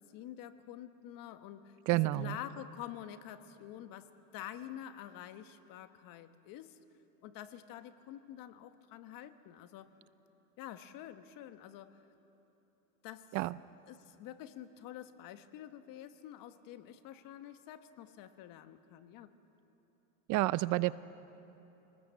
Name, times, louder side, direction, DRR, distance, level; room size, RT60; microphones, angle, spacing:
voice 1, 0.0-1.8 2.1-6.8 7.2-9.9 10.6-12.0 13.0-13.4 13.9-19.3, left 11 dB, 55° left, 10 dB, 1.3 m, -48 dB
voice 2, 1.9-2.4 13.3-13.6 20.3-20.9, right 19 dB, 50° right, 18 dB, 0.5 m, -29 dB
26.0 x 19.5 x 7.7 m, 3.0 s
supercardioid pair, 115°, 40 cm